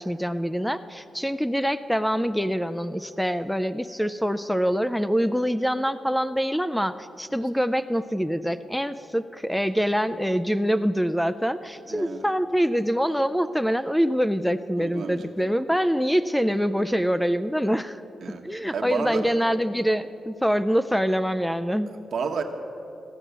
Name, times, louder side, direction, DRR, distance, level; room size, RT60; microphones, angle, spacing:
voice 1, 0.0-18.0 18.4-21.9, equal, ahead, 12 dB, 0.3 m, -25 dB
voice 2, 11.9-12.2 14.8-15.3 18.2-19.2 22.1-22.4, right 5 dB, 70° right, 4 dB, 1.0 m, -31 dB
14.5 x 6.1 x 7.9 m, 2.8 s
cardioid pair, 95°, 0 cm